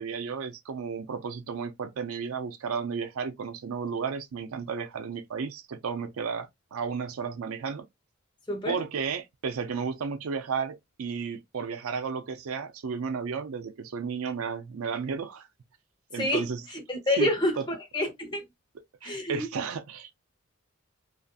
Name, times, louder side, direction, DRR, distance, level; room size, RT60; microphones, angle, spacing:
voice 1, 0.0-7.8 8.7-15.5 16.1-16.6 17.2-17.3 17.6-17.7 19.0-20.1, right 5 dB, 80° right, 0.4 m, -33 dB
voice 2, 8.5-8.8 16.1-18.4 19.0-19.5, left 1 dB, 20° left, 0.7 m, -28 dB
2.6 x 2.5 x 2.3 m
head